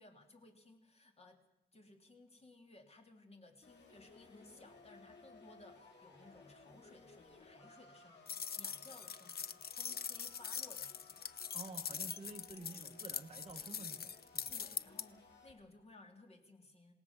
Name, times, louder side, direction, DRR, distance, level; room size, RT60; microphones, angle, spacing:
voice 1, 0.0-1.4 1.7-11.3 14.5-16.9, left 2 dB, 35° left, 4 dB, 3.2 m, -60 dB
sound 1, 3.6-15.5, left 3 dB, 90° left, 7.0 m, -61 dB
sound 2, 8.3-15.0, left 7 dB, 60° left, 0.7 m, -43 dB
voice 2, 11.5-14.7, right 3 dB, 35° right, 2 dB, 1.4 m, -51 dB
27.5 x 18.5 x 7.3 m, 0.87 s
wide cardioid pair, 145°, 18 cm